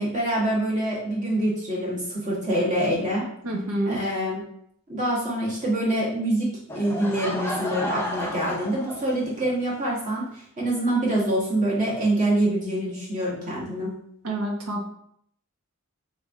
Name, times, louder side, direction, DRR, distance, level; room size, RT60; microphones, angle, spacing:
voice 1, 0.0-3.3 3.8-4.4 4.9-13.9, right 1 dB, 35° right, -6 dB, 1.4 m, -25 dB
voice 2, 3.4-4.0 14.2-14.8, right 1 dB, 85° right, 0 dB, 1.0 m, -27 dB
Laughter / Crowd, 6.7-9.5, left 1 dB, 10° left, 0.5 m, -32 dB
3.5 x 3.4 x 3.6 m, 0.69 s
head